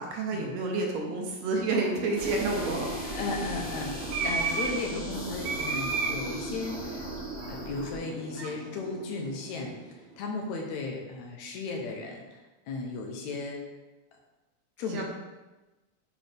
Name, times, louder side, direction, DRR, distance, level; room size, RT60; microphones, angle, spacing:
voice 1, 0.0-2.9 14.9-15.0, right 3 dB, 70° right, 1 dB, 2.0 m, -29 dB
sound 1, 1.4-9.9, right 4 dB, 85° right, 1.1 m, -35 dB
sound 2, 2.2-8.0, left 1 dB, 25° left, 1.7 m, -40 dB
voice 2, 3.1-7.1 7.5-13.6 14.8-15.0, left 3 dB, 75° left, 1 dB, 2.1 m, -35 dB
8.4 x 4.0 x 3.4 m, 1.1 s
omnidirectional pair, 3.4 m